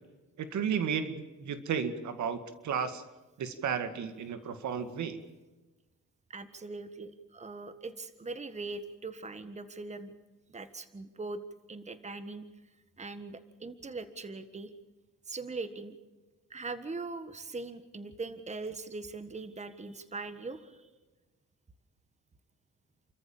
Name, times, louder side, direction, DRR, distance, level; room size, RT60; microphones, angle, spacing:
voice 1, 0.4-3.0 3.4-5.2, right 7 dB, 70° right, 9 dB, 2.1 m, -33 dB
voice 2, 6.3-10.1 10.5-11.4 11.7-12.4 13.0-14.7 15.3-16.0 16.5-20.8, right 3 dB, 25° right, 11 dB, 1.6 m, -41 dB
29.5 x 14.0 x 7.3 m, 1.2 s
cardioid pair, 90°, 30 cm